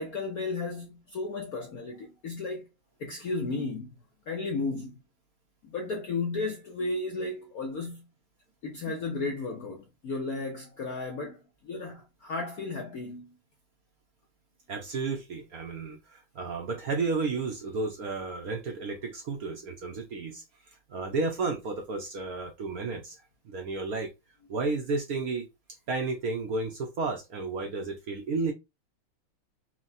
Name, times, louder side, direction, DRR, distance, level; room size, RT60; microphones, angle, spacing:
voice 1, 0.0-2.7 3.0-3.9 4.3-5.0 5.6-8.0 8.6-13.3, left 3 dB, 75° left, 0.8 m, -34 dB
voice 2, 14.7-24.1 24.5-25.5 25.9-28.5, right 3 dB, 65° right, 0.9 m, -32 dB
4.6 x 2.1 x 4.1 m
omnidirectional pair, 2.4 m